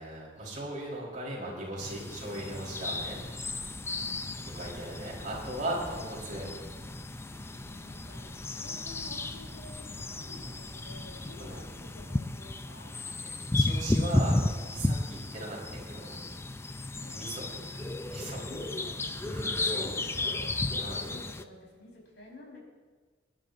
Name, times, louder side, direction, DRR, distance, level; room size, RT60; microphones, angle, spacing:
voice 1, 0.0-3.2 4.4-6.5 11.4-11.6 13.2-16.2 17.1-17.5 18.1-18.4 19.2-20.0 20.8-21.1, right 1 dB, 45° right, -4 dB, 4.2 m, -38 dB
sound 1, 1.8-21.4, left 2 dB, 15° left, 0.4 m, -34 dB
sound 2, 3.0-12.0, equal, 45° left, 2.1 m, -51 dB
voice 2, 5.3-5.9 7.6-12.9 16.8-17.9 18.5-19.3 19.8-22.6, left 2 dB, 80° left, -3 dB, 4.6 m, -51 dB
27.0 x 11.0 x 2.6 m, 1.5 s
head